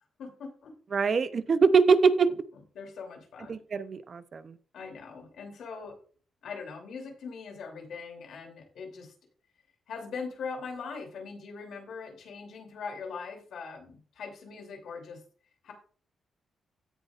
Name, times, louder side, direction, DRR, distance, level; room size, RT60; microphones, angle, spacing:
voice 1, 0.2-0.7 2.7-3.6 4.7-5.9 6.4-9.1 9.9-15.2 15.6-15.7, left 5 dB, 75° left, 2 dB, 2.9 m, -41 dB
voice 2, 0.9-2.3 3.5-4.5, right 5 dB, 40° right, 13 dB, 0.5 m, -23 dB
16.0 x 5.6 x 2.4 m, 0.42 s
cardioid pair, 135°, 0 cm